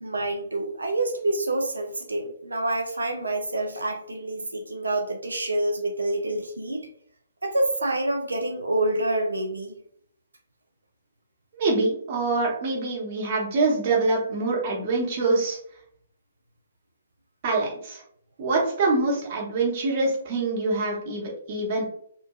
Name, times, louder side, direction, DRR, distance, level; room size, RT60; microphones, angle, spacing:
voice 1, 0.0-6.9 7.4-9.7, right 2 dB, 75° right, 3 dB, 0.4 m, -27 dB
voice 2, 11.5-15.6 17.4-18.0 18.4-21.8, right 3 dB, 40° right, -2 dB, 0.9 m, -25 dB
3.0 x 2.1 x 2.3 m, 0.66 s
figure-of-eight pair, 125°, 0 cm